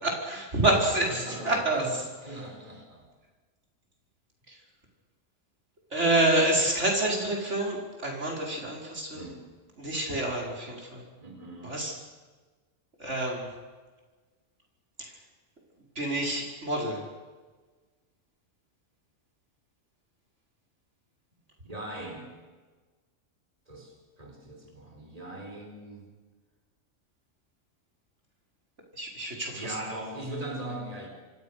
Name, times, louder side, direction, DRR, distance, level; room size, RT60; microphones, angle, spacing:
voice 1, 0.0-1.8 4.5-4.6 5.9-9.2 9.8-11.0 11.6-11.9 13.0-13.5 15.0-15.1 16.0-17.0 29.0-29.6, right 2 dB, 60° right, -1 dB, 5.5 m, -27 dB
voice 2, 0.9-3.1 9.1-9.4 11.2-11.8 21.6-22.3 23.7-26.1 29.5-31.1, right 1 dB, 30° right, 2 dB, 4.5 m, -40 dB
28.0 x 25.0 x 6.6 m, 1.3 s
omnidirectional pair, 1.3 m